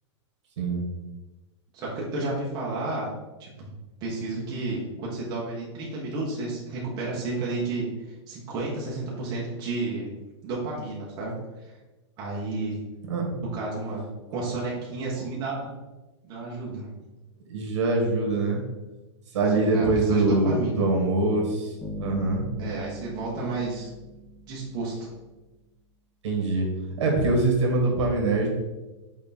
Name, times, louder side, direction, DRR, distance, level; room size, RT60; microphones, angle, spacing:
voice 1, 1.7-3.1 3.4-3.7 4.0-10.1 10.4-11.3 11.6-11.7 12.2-12.8 13.5-14.1 14.3-15.7 16.2-16.9 19.5-20.8 22.6-23.9 24.5-25.1, right 2 dB, 25° right, -5 dB, 1.3 m, -31 dB
voice 2, 17.5-18.6 19.3-22.4 26.2-26.7 27.0-28.5, right 2 dB, 70° right, 0 dB, 2.0 m, -23 dB
sound 1, 21.8-25.2, right 1 dB, 5° left, 0.8 m, -39 dB
6.4 x 3.8 x 4.3 m, 1.1 s
supercardioid pair, 165°, 15 cm